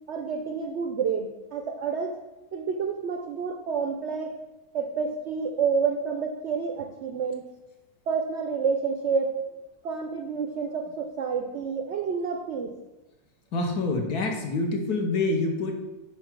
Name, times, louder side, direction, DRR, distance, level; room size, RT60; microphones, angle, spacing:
voice 1, 0.1-2.1 2.5-4.3 4.7-7.4 8.1-9.4 9.8-12.7, right 5 dB, 75° right, 4 dB, 0.6 m, -29 dB
voice 2, 13.5-15.7, left 3 dB, 70° left, 3 dB, 1.5 m, -26 dB
5.0 x 4.5 x 6.0 m, 1.0 s
omnidirectional pair, 1.8 m